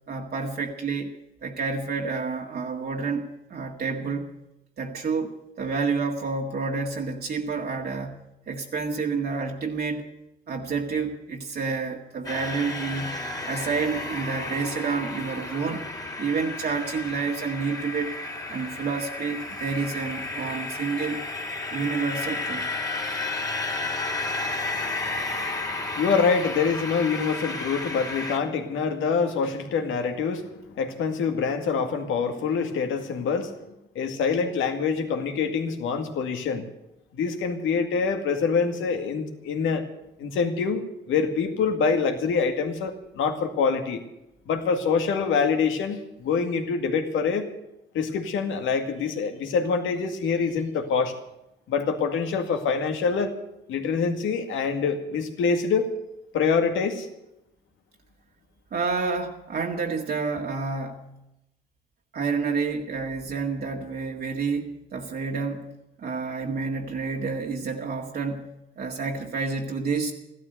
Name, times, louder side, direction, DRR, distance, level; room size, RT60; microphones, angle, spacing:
voice 1, 0.1-1.1 1.4-4.4 4.8-10.1 10.5-15.9 16.2-18.1 18.5-21.2 21.7-22.6 58.7-61.2 62.1-70.1, right 4 dB, 50° right, 0 dB, 1.9 m, -29 dB
sound 1, 12.2-28.4, left 2 dB, 20° left, 2.3 m, -32 dB
voice 2, 24.7-33.6 34.0-36.6 37.1-39.8 40.2-44.0 44.5-47.5 47.9-51.1 51.7-53.3 53.7-55.9 56.3-57.1, left 5 dB, 80° left, 5 dB, 2.1 m, -25 dB
15.0 x 12.5 x 7.9 m, 0.88 s
cardioid pair, 90°, 20 cm